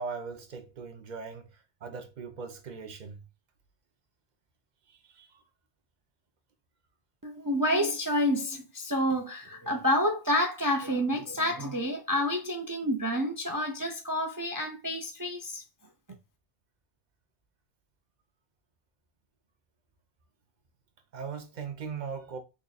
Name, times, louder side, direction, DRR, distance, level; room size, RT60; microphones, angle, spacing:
voice 1, 0.0-1.5 1.8-3.2 5.0-5.3 21.1-22.4, right 5 dB, 50° right, 0.8 m, -39 dB
voice 2, 7.2-15.6, equal, 30° right, 0.3 m, -29 dB
3.7 x 2.3 x 4.0 m
omnidirectional pair, 1.1 m